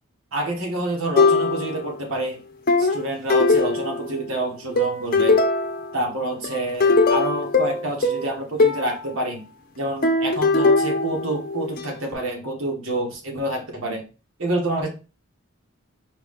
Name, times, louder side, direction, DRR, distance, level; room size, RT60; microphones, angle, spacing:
voice 1, 0.3-2.4 2.8-5.4 5.9-9.4 9.8-14.0 14.4-14.9, right 1 dB, 80° right, 1 dB, 1.4 m, -27 dB
sound 1, 1.1-2.0 2.7-4.3 4.8-6.0 6.4-8.9 10.0-11.8, left 3 dB, 45° left, 0.7 m, -20 dB
4.7 x 3.1 x 3.5 m, 0.33 s
head